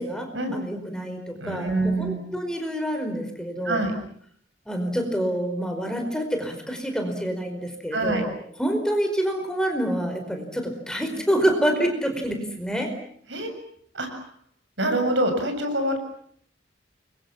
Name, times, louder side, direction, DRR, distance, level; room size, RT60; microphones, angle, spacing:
voice 1, 0.0-3.8 4.7-12.9, equal, 5° left, 4 dB, 4.9 m, -27 dB
voice 2, 1.4-2.2 3.6-3.9 7.9-8.2 13.3-13.5 13.9-14.2 14.8-16.0, right 1 dB, 70° right, 6 dB, 7.3 m, -25 dB
29.5 x 24.0 x 7.4 m, 0.65 s
head